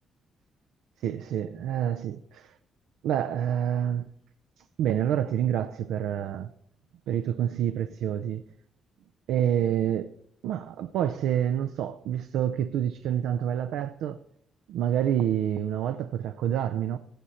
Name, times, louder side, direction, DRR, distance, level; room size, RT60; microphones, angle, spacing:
voice 1, 1.0-2.6 3.0-4.1 4.8-6.5 7.1-8.4 9.3-10.1 10.4-14.2 14.7-17.0, right 10 dB, 85° right, 0.4 m, -27 dB
16.5 x 6.4 x 4.2 m
cardioid pair, 90°, 0 cm